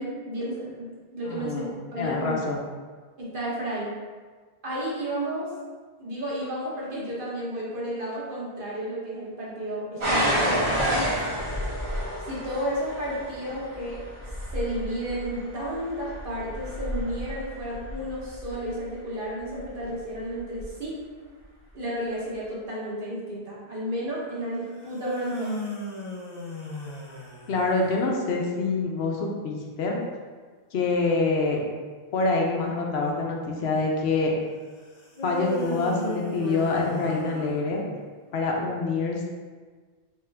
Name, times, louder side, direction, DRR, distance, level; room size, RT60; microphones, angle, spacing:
voice 1, 0.0-2.4 3.2-3.9 4.6-5.5 6.0-10.8 12.3-14.0 14.5-21.0 21.7-25.6, equal, 55° right, -6 dB, 1.2 m, -32 dB
voice 2, 1.3-2.6 27.5-30.0 30.7-31.6 32.1-34.3 35.2-37.8 38.3-39.2, left 3 dB, 75° left, 0 dB, 0.9 m, -26 dB
sound 1, 10.0-18.8 19.6-20.0 20.6-20.7, equal, 30° right, 0.8 m, -30 dB
sound 2, 24.8-28.0 35.2-38.1, left 1 dB, 35° left, 0.6 m, -34 dB
3.6 x 3.3 x 3.3 m, 1.5 s
omnidirectional pair, 1.1 m